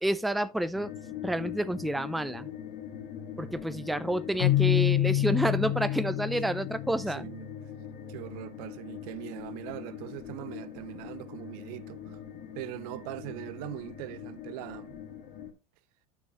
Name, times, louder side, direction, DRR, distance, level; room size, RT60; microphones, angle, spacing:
voice 1, 0.0-0.9 1.2-2.5 3.4-7.3, right 1 dB, ahead, 0.4 m, -29 dB
sound 1, 0.7-15.5, left 9 dB, 55° left, 2.2 m, -42 dB
Keyboard (musical), 4.4-7.3, left 14 dB, 70° left, 0.5 m, -27 dB
voice 2, 7.1-7.5 8.1-12.2 12.5-15.0, right 17 dB, 65° right, 0.6 m, -41 dB
9.4 x 6.1 x 3.0 m
hypercardioid pair, 85°, 21 cm